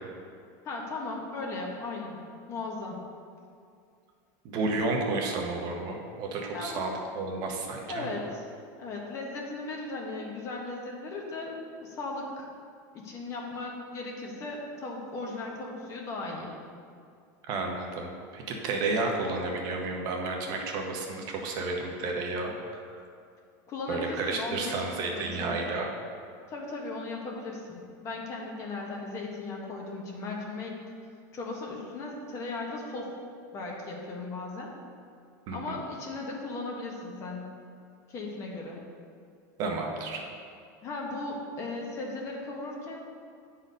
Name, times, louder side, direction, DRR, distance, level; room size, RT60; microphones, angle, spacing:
voice 1, 0.6-2.2 2.5-3.0 6.5-6.9 7.8-8.5 8.8-12.5 12.9-16.5 23.7-25.6 26.5-30.7 31.3-33.1 33.5-34.7 35.5-37.5 38.1-38.8 40.8-43.0, left 3 dB, 30° left, 0 dB, 1.2 m, -37 dB
voice 2, 4.4-8.2 17.5-22.6 22.9-23.0 23.9-25.9 35.5-35.6 39.6-40.2, right 3 dB, 40° right, 1 dB, 0.9 m, -31 dB
9.6 x 4.2 x 5.2 m, 2.3 s
supercardioid pair, 160°, 10 cm